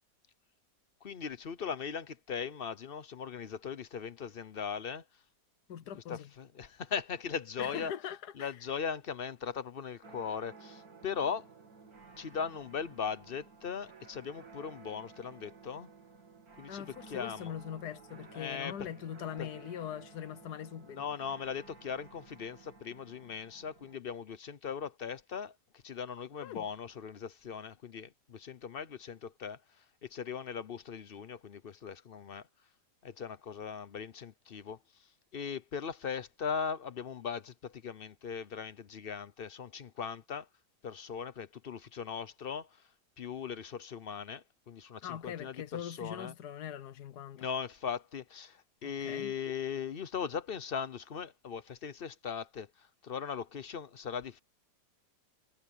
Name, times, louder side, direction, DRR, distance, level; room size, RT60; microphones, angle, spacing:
voice 1, 1.0-5.0 5.9-7.9 8.4-11.5 12.2-15.9 16.6-17.5 18.3-18.9 19.4-19.5 20.9-32.4 33.0-34.8 35.3-40.5 40.8-42.8 43.2-46.3 47.4-54.4, left 6 dB, 50° left, 0.7 m, -39 dB
voice 2, 5.7-6.3 7.6-8.5 16.7-21.1 26.4-26.7 45.0-47.5 48.8-49.3, left 9 dB, 70° left, 1.4 m, -42 dB
sound 1, 10.0-24.0, right 4 dB, 60° right, 3.6 m, -55 dB
omnidirectional pair, 1.9 m